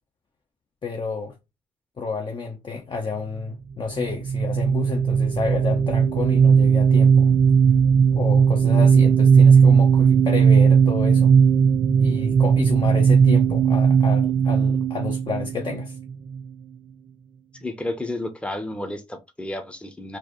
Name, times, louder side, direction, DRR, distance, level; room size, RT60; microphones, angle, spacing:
voice 1, 0.8-1.3 2.0-7.3 8.2-11.3 12.0-16.0, left 5 dB, 40° left, 0.8 m, -30 dB
sound 1, 4.0-16.4, right 6 dB, 65° right, 0.8 m, -17 dB
voice 2, 17.6-20.2, left 1 dB, 10° left, 0.8 m, -31 dB
4.4 x 2.6 x 3.0 m
cardioid pair, 75°, 13 cm